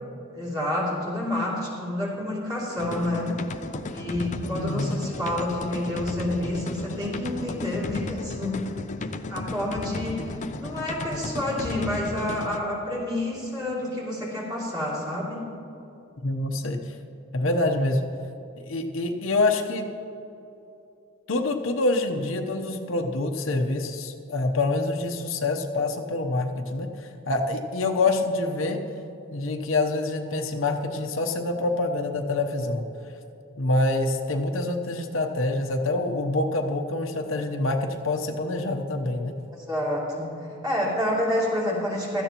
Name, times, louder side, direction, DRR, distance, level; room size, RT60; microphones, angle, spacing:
voice 1, 0.3-3.3 3.9-8.7 9.3-15.5 39.5-40.4 40.6-42.2, left 1 dB, 20° right, -5 dB, 2.9 m, -29 dB
sound 1, 2.8-12.6, left 2 dB, 35° left, 0.5 m, -34 dB
voice 2, 4.5-4.9 16.2-16.9 17.3-18.0 18.6-19.9 21.3-28.8 29.3-32.8 33.6-39.3, left 2 dB, 70° left, 4 dB, 0.8 m, -26 dB
16.0 x 13.0 x 3.0 m, 2.8 s
head